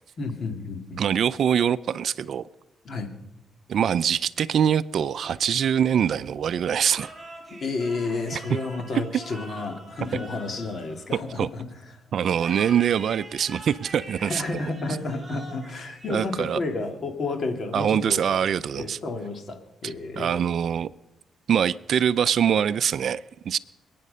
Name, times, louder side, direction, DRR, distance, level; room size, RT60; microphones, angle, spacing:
voice 1, 0.2-1.0 2.8-3.1 7.5-11.6 14.2-18.4 18.8-20.3, left 3 dB, 50° left, 2.6 m, -31 dB
voice 2, 1.0-2.5 3.7-7.1 11.4-11.5 12.1-14.4 16.1-16.6 17.7-19.0 19.8-20.9 21.5-23.6, right 8 dB, 60° right, 0.4 m, -24 dB
sound 1, 6.8-11.6 12.3-16.7, right 1 dB, 25° right, 6.6 m, -44 dB
26.5 x 9.4 x 5.5 m
cardioid pair, 110°, 0 cm